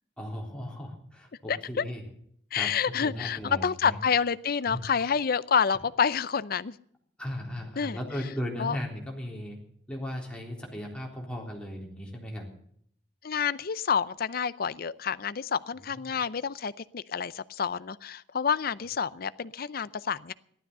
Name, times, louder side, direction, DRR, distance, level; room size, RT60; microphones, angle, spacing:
voice 1, 0.2-2.0 2.5-2.7 3.0-4.0 4.7-4.8 7.2-9.6 9.9-12.5 15.9-16.2, equal, 5° left, -1 dB, 3.8 m, -37 dB
voice 2, 1.5-1.8 2.5-6.7 7.8-8.0 8.6-8.8 13.2-20.3, left 6 dB, 55° left, 17 dB, 0.6 m, -28 dB
14.5 x 12.5 x 6.8 m, 0.66 s
head